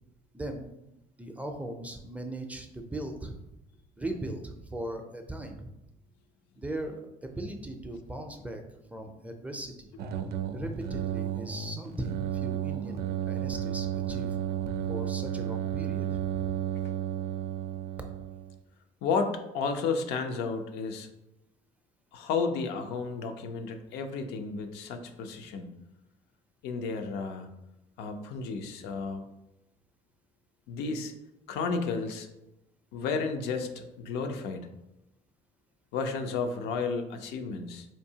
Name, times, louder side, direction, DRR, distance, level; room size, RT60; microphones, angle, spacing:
voice 1, 0.3-0.7 1.2-3.4 4.0-5.7 6.6-8.6 8.9-9.9 10.5-14.4 14.9-16.6, right 1 dB, 10° right, 4 dB, 0.4 m, -38 dB
sound 1, 10.0-18.6, right 10 dB, 70° right, 0.4 m, -33 dB
voice 2, 19.0-21.1 22.1-25.7 26.6-27.5 28.0-29.2 30.7-31.1 31.5-32.3 32.9-34.7 35.9-37.9, left 4 dB, 90° left, 6 dB, 0.5 m, -32 dB
4.5 x 2.7 x 2.7 m, 0.90 s
cardioid pair, 110°, 17 cm